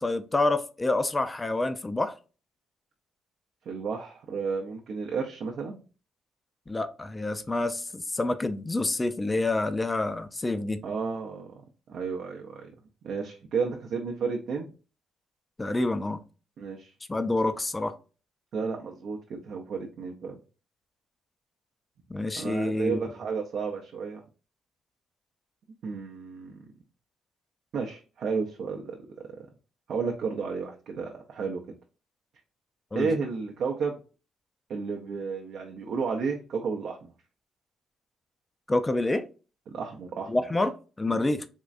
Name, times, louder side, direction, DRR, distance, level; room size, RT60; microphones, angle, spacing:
voice 1, 0.0-2.1 6.7-10.8 15.6-16.2 17.1-17.9 22.1-23.0 32.9-33.1 38.7-39.2 40.3-41.5, left 2 dB, 20° left, 9 dB, 0.4 m, -27 dB
voice 2, 3.7-5.8 10.8-11.5 11.9-12.7 13.0-14.7 16.6-16.9 18.5-20.4 22.4-24.2 25.8-26.6 27.7-29.3 29.9-31.8 32.9-34.0 34.7-37.1 39.7-40.3 41.1-41.3, right 5 dB, 65° right, 0 dB, 0.6 m, -32 dB
3.6 x 3.1 x 2.5 m, 0.35 s
cardioid pair, 90°, 0 cm